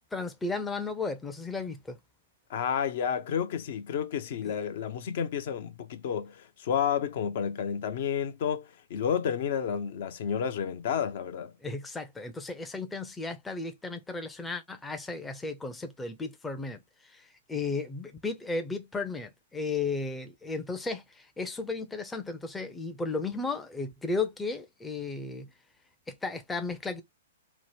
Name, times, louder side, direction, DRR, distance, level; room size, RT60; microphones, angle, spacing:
voice 1, 0.1-2.0 4.5-4.6 11.6-25.5 26.1-27.0, left 3 dB, 10° left, 0.5 m, -34 dB
voice 2, 2.5-11.5, left 8 dB, 55° left, 0.5 m, -31 dB
2.9 x 2.0 x 3.3 m
figure-of-eight pair, 115°, 0 cm